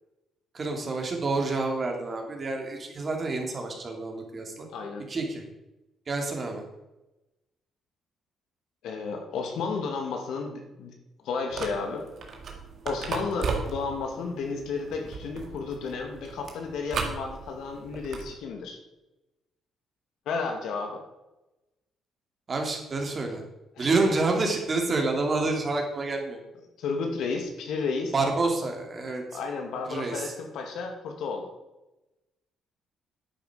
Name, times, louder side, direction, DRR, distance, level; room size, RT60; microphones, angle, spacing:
voice 1, 0.5-4.7 5.1-5.4 6.1-6.6 22.5-23.4 23.8-26.4 28.1-29.2 29.9-30.3, right 3 dB, 40° right, 2 dB, 2.8 m, -28 dB
voice 2, 4.6-5.0 8.8-10.9 11.2-12.1 12.8-18.8 20.3-21.0 23.8-24.0 26.8-28.1 29.3-31.5, left 4 dB, 80° left, 3 dB, 2.3 m, -32 dB
sound 1, 11.5-18.4, right 5 dB, 60° right, 2.0 m, -36 dB
10.5 x 8.6 x 5.1 m, 0.99 s
cardioid pair, 90°, 0 cm